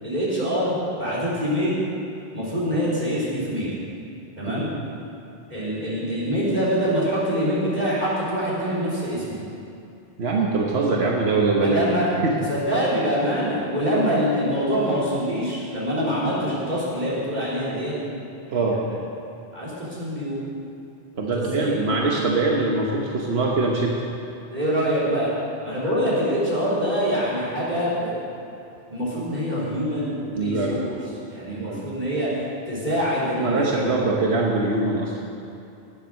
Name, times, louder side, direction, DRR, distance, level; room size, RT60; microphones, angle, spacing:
voice 1, 0.0-1.8 2.3-3.7 4.4-4.7 5.5-9.4 11.6-12.1 12.5-18.0 18.5-18.8 19.5-20.4 21.3-22.0 24.5-25.3 25.6-28.1 28.9-30.9 31.3-33.9, equal, 45° right, -8 dB, 4.3 m, -25 dB
voice 2, 10.2-11.8 12.2-12.3 18.5-18.8 21.1-24.0 30.4-30.8 31.5-32.0 33.4-35.1, right 3 dB, 85° right, -2 dB, 1.4 m, -23 dB
19.0 x 7.4 x 6.4 m, 2.6 s
omnidirectional pair, 1.0 m